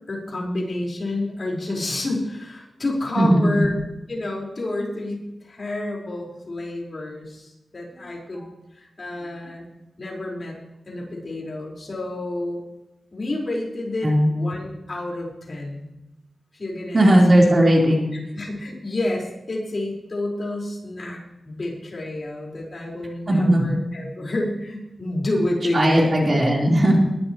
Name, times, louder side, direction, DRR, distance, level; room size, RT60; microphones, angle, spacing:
voice 1, 0.1-3.8 4.1-8.5 8.7-9.7 10.0-10.6 10.9-12.6 13.1-15.9 16.5-17.5 18.3-21.2 21.4-26.3, left 2 dB, 45° left, -2 dB, 4.8 m, -29 dB
voice 2, 3.2-3.7 8.4-8.5 14.0-14.3 16.9-18.1 23.3-23.7 25.7-27.0, right 1 dB, 35° right, -2 dB, 4.1 m, -17 dB
21.0 x 12.5 x 3.2 m, 0.95 s
wide cardioid pair, 115°, 0 cm